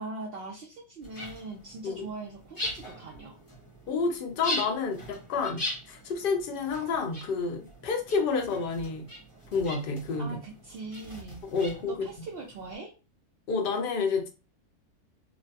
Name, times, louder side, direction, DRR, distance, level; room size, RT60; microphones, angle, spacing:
voice 1, 0.0-3.4 10.2-11.4 11.9-12.9, right 3 dB, 70° right, -1 dB, 0.5 m, -41 dB
sound 1, 1.0-12.8, left 1 dB, 20° left, 0.7 m, -41 dB
voice 2, 3.9-9.1 9.5-10.4 11.5-12.1 13.5-14.3, left 4 dB, 60° left, 4 dB, 0.5 m, -29 dB
3.0 x 2.1 x 2.7 m, 0.31 s
omnidirectional pair, 1.6 m